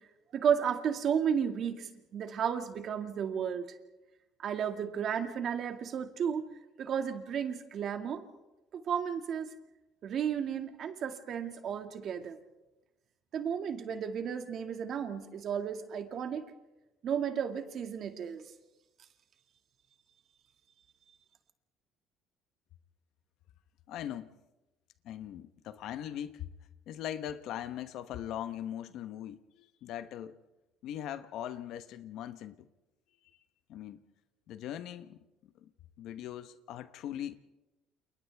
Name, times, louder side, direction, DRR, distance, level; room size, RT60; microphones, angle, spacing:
voice 1, 0.3-3.7 4.4-6.5 6.8-8.2 8.7-9.5 10.0-12.4 13.3-16.5 17.0-18.4, right 8 dB, 50° right, 2.1 m, -33 dB
voice 2, 23.9-24.3 25.0-26.5 26.9-30.4 30.8-32.7 33.7-34.0 34.5-35.7 36.0-37.4, left 10 dB, 65° left, 1.1 m, -40 dB
29.5 x 29.0 x 3.5 m
cardioid pair, 125°, 0 cm